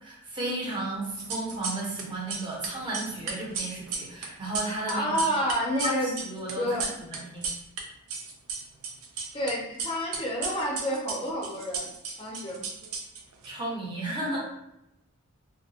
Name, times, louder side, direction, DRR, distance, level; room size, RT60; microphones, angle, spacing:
voice 1, 0.0-5.1 5.8-7.4 13.4-14.4, right 2 dB, 20° right, -4 dB, 0.7 m, -34 dB
sound 1, 1.1-2.0 2.3-7.8 8.1-9.5 9.8-13.5, right 4 dB, 80° right, 0.5 m, -34 dB
voice 2, 4.9-6.2 6.5-6.9 9.3-11.9 12.2-12.6, equal, 25° left, -3 dB, 0.5 m, -29 dB
2.6 x 2.2 x 2.7 m, 0.85 s
head